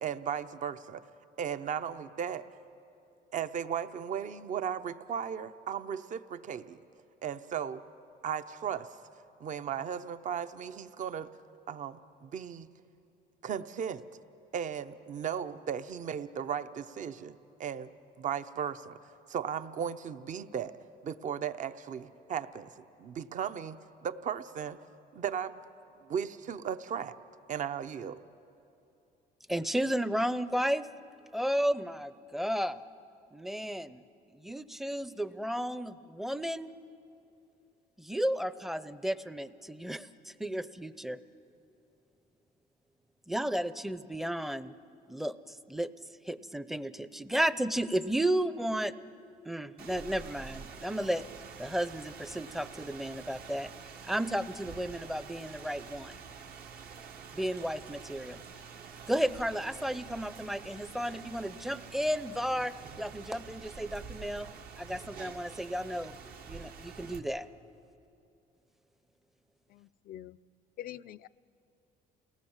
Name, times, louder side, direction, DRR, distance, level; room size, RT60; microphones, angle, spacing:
voice 1, 0.0-1.0 1.4-2.5 3.3-6.8 7.2-7.8 8.2-8.9 9.4-11.3 11.7-12.7 13.4-14.1 14.5-17.9 18.2-19.0 19.3-20.7 21.0-24.8 25.1-25.6 26.1-27.2 27.5-28.2, right 8 dB, 50° right, 12 dB, 0.8 m, -36 dB
voice 2, 29.5-30.9 31.3-32.8 33.3-34.0 34.4-36.7 38.0-41.2 43.3-44.7 45.1-45.4 45.7-45.9 46.3-48.9 49.4-51.2 51.6-53.7 54.1-56.2 57.3-58.4 59.1-64.5 64.8-66.1 66.5-67.5, equal, ahead, 14 dB, 0.6 m, -33 dB
Rain, 49.8-67.2, right 6 dB, 65° right, 1.5 m, -47 dB
voice 3, 69.7-70.4 70.8-71.3, left 12 dB, 60° left, 18 dB, 0.4 m, -45 dB
29.0 x 18.5 x 7.3 m, 2.8 s
cardioid pair, 110°, 17 cm